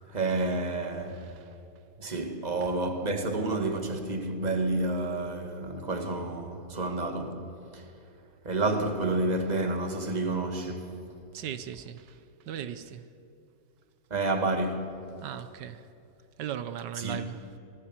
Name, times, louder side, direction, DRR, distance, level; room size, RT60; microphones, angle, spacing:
voice 1, 0.1-1.4 2.0-7.9 8.4-11.0 14.1-15.0 17.0-17.3, right 2 dB, 25° right, 1.8 m, -30 dB
voice 2, 11.3-12.2 12.5-13.0 15.2-15.8 16.4-17.4, right 9 dB, 85° right, 1.5 m, -37 dB
24.5 x 18.5 x 7.4 m
omnidirectional pair, 1.8 m